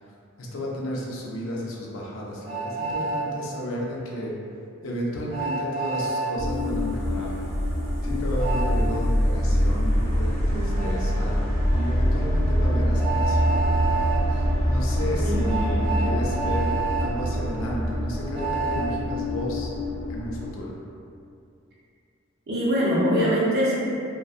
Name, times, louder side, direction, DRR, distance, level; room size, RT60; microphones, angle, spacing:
voice 1, 0.4-4.3 4.8-7.4 8.0-13.6 14.3-19.7 20.1-20.8, equal, 75° left, -3 dB, 0.5 m, -33 dB
Train, 2.4-3.2 5.3-6.3 8.4-8.7 10.8-10.9 13.0-14.2 15.4-17.1 18.3-18.9, right 4 dB, 25° right, 0.9 m, -28 dB
sound 1, 6.4-20.5, equal, 10° left, 0.8 m, -24 dB
voice 2, 10.5-10.9 15.2-15.4 15.8-16.0 22.5-23.8, equal, 55° right, -7 dB, 0.6 m, -23 dB
2.6 x 2.2 x 2.3 m, 2.5 s
head